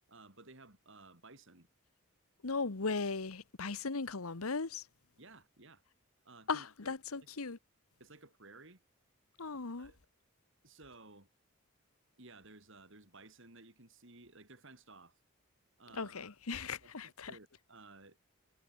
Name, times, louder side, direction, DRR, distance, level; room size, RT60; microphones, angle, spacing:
voice 1, 0.1-1.7 5.2-5.8 6.2-7.0 7.2-7.3 8.0-8.8 9.8-10.0 10.6-11.3 12.2-15.2 15.8-16.1 16.8-18.2, right 3 dB, 60° right, 4.5 m, -56 dB
voice 2, 2.4-4.8 6.5-7.6 9.4-9.9 15.9-17.4, left 4 dB, 80° left, 1.2 m, -37 dB
head